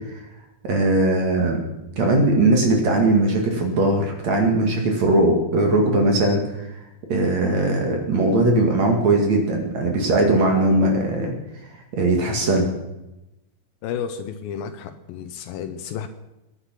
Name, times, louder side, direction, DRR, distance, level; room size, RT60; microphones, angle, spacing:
voice 1, 0.6-1.6 2.0-6.7 7.1-11.3 11.9-12.7, right 2 dB, 50° right, 2 dB, 2.9 m, -19 dB
voice 2, 13.8-16.1, left 8 dB, 75° left, 9 dB, 2.6 m, -32 dB
20.0 x 10.0 x 5.9 m, 0.96 s
omnidirectional pair, 4.4 m